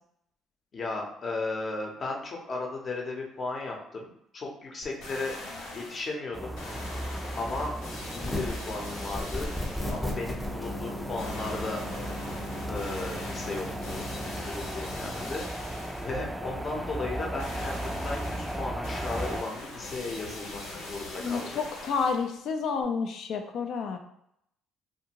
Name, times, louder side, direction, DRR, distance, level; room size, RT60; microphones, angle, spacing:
voice 1, 0.7-5.3 5.7-6.6 7.4-7.7 8.1-9.5 9.9-11.8 12.7-14.0 14.4-15.5 16.0-21.6, left 3 dB, 45° left, 0 dB, 0.8 m, -35 dB
sound 1, 4.8-6.1 6.5-10.1 11.2-16.1 17.4-22.3 22.8-22.9, left 2 dB, 85° left, 1.2 m, -41 dB
sound 2, 6.3-19.4, right 1 dB, 10° right, 0.3 m, -37 dB
sound 3, 8.2-8.6 9.1-14.4, left 1 dB, 10° left, 0.8 m, -36 dB
voice 2, 21.2-24.0, left 5 dB, 65° left, 5 dB, 0.4 m, -30 dB
2.6 x 2.5 x 2.9 m, 0.75 s
supercardioid pair, 80°, 0 cm